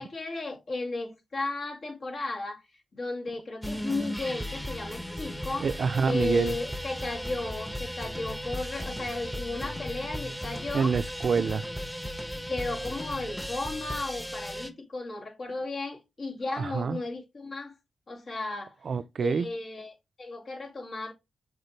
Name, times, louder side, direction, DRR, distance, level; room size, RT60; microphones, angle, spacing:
voice 1, 0.0-2.6 2.9-5.7 6.0-10.9 11.4-11.5 12.3-17.7 18.1-18.8 19.2-21.1, left 2 dB, 60° left, 2.4 m, -34 dB
sound 1, 3.6-14.7, equal, 5° left, 1.0 m, -36 dB
voice 2, 5.6-6.5 10.7-11.6 16.6-17.0 18.8-19.5, right 5 dB, 65° right, 0.4 m, -26 dB
6.7 x 4.4 x 3.2 m
cardioid pair, 75°, 0 cm